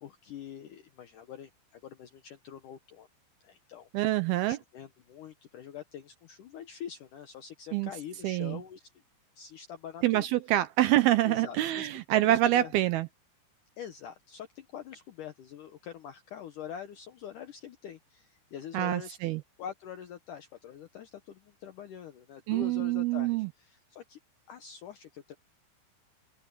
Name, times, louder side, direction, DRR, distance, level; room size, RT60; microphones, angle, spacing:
voice 1, 0.0-3.1 3.4-3.9 4.4-8.9 9.4-10.3 11.3-12.7 13.8-19.2 19.6-24.2 24.5-25.3, left 9 dB, 75° left, 1.9 m, -45 dB
voice 2, 3.9-4.6 7.7-7.9 8.2-8.6 10.0-13.1 18.7-19.4 22.5-23.5, right 14 dB, 80° right, 2.3 m, -26 dB
omnidirectional pair, 5.0 m